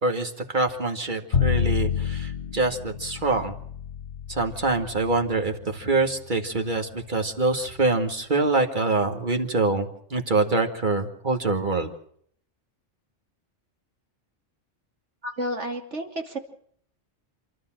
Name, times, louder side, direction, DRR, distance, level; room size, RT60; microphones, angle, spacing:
voice 1, 0.0-3.5 4.3-11.9, right 3 dB, 45° right, 4 dB, 2.3 m, -25 dB
Bowed string instrument, 1.3-7.5, left 8 dB, 60° left, 1.3 m, -30 dB
voice 2, 15.2-16.4, equal, 75° right, 4 dB, 2.9 m, -31 dB
28.0 x 12.5 x 7.6 m, 0.65 s
omnidirectional pair, 1.2 m